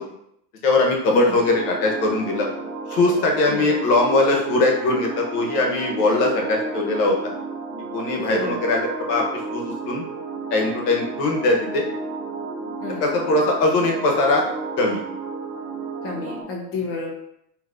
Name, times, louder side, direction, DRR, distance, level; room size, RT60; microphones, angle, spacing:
voice 1, 0.6-2.5 2.9-7.2 7.9-10.0 10.5-11.8 13.0-14.5 14.8-15.0, left 2 dB, 80° left, 0 dB, 1.1 m, -21 dB
sound 1, 1.0-16.4, right 3 dB, 40° right, 0.7 m, -32 dB
voice 2, 8.2-8.6 12.8-13.1 16.0-17.1, left 3 dB, 30° left, -2 dB, 0.8 m, -30 dB
5.0 x 2.8 x 2.6 m, 0.77 s
supercardioid pair, 140°, 47 cm